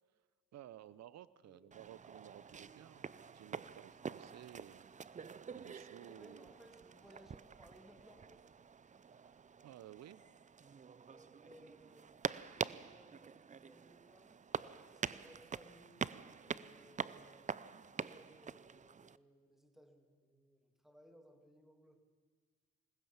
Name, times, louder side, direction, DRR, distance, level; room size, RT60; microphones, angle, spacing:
voice 1, 0.5-3.1 3.3-4.9 5.2-6.5 9.1-10.2, right 12 dB, 60° right, 18 dB, 0.7 m, -55 dB
voice 2, 1.4-1.8 6.0-8.5 11.1-14.5 14.9-16.1 16.4-17.6 17.9-22.0, equal, ahead, 6 dB, 2.3 m, -63 dB
sound 1, 1.7-19.2, right 6 dB, 25° right, 0.5 m, -46 dB
21.0 x 19.0 x 7.3 m, 1.5 s
cardioid pair, 90°, 30 cm